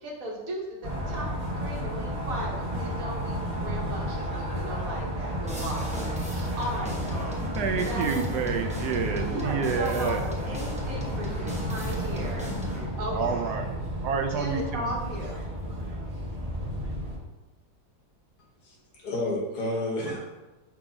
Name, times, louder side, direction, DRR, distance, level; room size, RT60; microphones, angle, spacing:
voice 1, 0.0-7.4 7.7-8.3 9.2-12.5 13.0-13.5 14.3-15.4, right 1 dB, 60° right, -1 dB, 1.6 m, -36 dB
sound 1, 0.8-17.2, equal, 25° right, 1.0 m, -32 dB
sound 2, 5.5-12.9, left 1 dB, 5° right, 0.6 m, -37 dB
voice 2, 7.5-10.2 13.1-15.0, right 6 dB, 75° right, 5 dB, 1.2 m, -29 dB
voice 3, 18.6-20.3, left 1 dB, 70° left, -2 dB, 1.9 m, -31 dB
6.1 x 3.8 x 4.9 m, 1.2 s
omnidirectional pair, 1.7 m